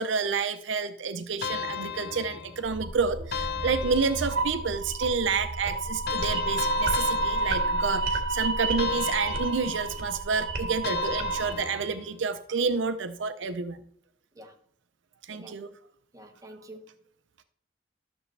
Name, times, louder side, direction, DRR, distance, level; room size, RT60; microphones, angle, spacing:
voice 1, 0.0-13.8 15.3-15.7, right 5 dB, 70° right, 0.6 m, -29 dB
sound 1, 1.4-2.7 3.3-4.6 6.1-8.2 8.8-10.1 10.8-12.1, left 7 dB, 55° left, 0.5 m, -35 dB
sound 2, 2.6-11.5, right 3 dB, 50° right, 1.5 m, -30 dB
voice 2, 15.3-15.8 16.1-16.9, right 1 dB, 20° right, 1.1 m, -47 dB
12.5 x 6.9 x 3.3 m
head